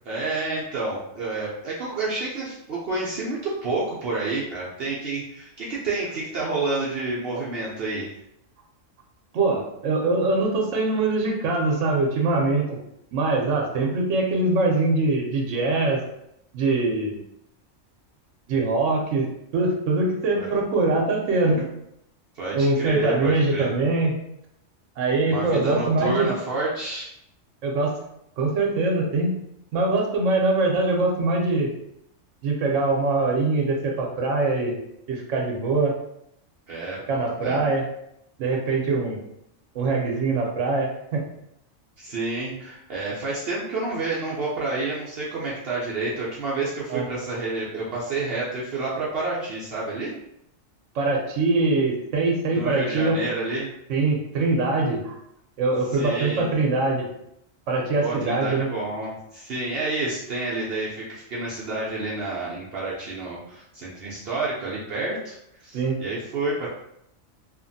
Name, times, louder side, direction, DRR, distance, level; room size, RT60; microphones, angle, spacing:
voice 1, 0.1-8.1 20.4-20.5 22.4-23.7 25.3-27.1 36.7-37.7 42.0-50.1 52.5-53.7 55.9-56.5 58.0-65.4 65.6-66.7, right 3 dB, 60° right, -6 dB, 0.8 m, -29 dB
voice 2, 9.3-12.8 13.1-16.0 16.5-17.2 18.5-19.3 19.5-21.7 22.5-24.2 25.0-26.3 27.6-27.9 28.4-29.4 29.7-31.7 32.4-34.8 35.1-35.9 37.1-37.9 38.4-39.2 39.7-41.2 46.9-47.1 50.9-53.2 53.9-55.2 55.6-57.1 57.7-58.7 65.7-66.0, right 3 dB, 80° right, 0 dB, 1.0 m, -23 dB
2.8 x 2.5 x 2.6 m, 0.78 s
omnidirectional pair, 1.3 m